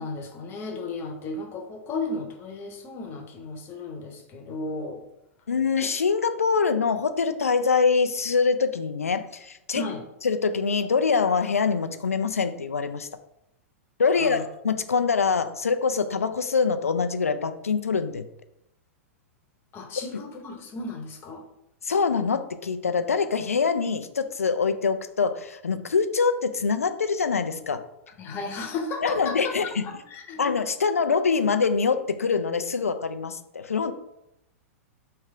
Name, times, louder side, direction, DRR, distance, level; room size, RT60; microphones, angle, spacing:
voice 1, 0.0-5.0 9.7-10.0 14.1-14.4 19.7-21.4 28.2-29.6 29.8-30.4, left 3 dB, 30° left, 4 dB, 0.9 m, -34 dB
voice 2, 5.5-9.8 10.2-13.1 14.0-18.2 21.8-27.8 29.0-29.9 30.4-33.9, left 5 dB, 80° left, 10 dB, 0.4 m, -24 dB
3.3 x 3.2 x 4.8 m, 0.84 s
figure-of-eight pair, 100°, 8 cm